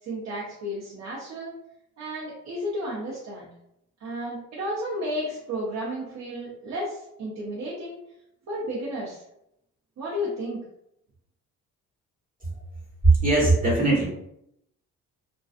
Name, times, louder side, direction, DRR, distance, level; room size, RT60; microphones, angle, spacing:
voice 1, 0.0-1.5 2.0-3.5 4.0-8.0 8.5-9.2 10.0-10.6, equal, 60° right, -7 dB, 0.8 m, -32 dB
voice 2, 13.0-14.1, right 2 dB, 25° right, -4 dB, 1.3 m, -19 dB
2.5 x 2.3 x 2.4 m, 0.79 s
cardioid pair, 90°, 30 cm